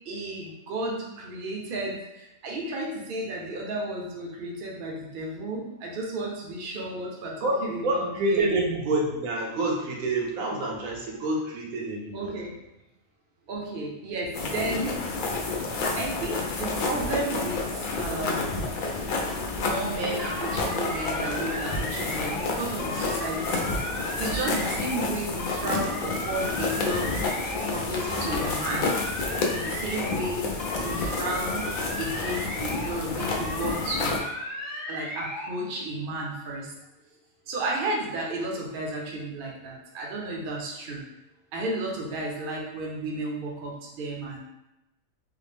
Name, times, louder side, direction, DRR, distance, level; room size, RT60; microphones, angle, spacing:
voice 1, 0.0-8.5 12.1-12.5 13.5-15.0 16.0-18.6 19.6-23.7 24.2-27.1 27.7-29.0 29.5-30.5 30.8-31.6 32.0-34.2 34.9-36.7 37.5-41.0 41.5-44.4, right 2 dB, 50° right, -1 dB, 0.7 m, -33 dB
voice 2, 7.8-12.3, right 2 dB, 80° right, -2 dB, 1.2 m, -27 dB
sound 1, 14.3-34.2, left 3 dB, 85° left, 0.4 m, -30 dB
sound 2, 20.2-22.5 22.8-25.1 25.4-27.7 28.0-30.3 30.6-32.9 33.2-35.5, left 1 dB, 45° left, 1.0 m, -35 dB
3.7 x 2.0 x 3.3 m, 0.92 s
omnidirectional pair, 1.4 m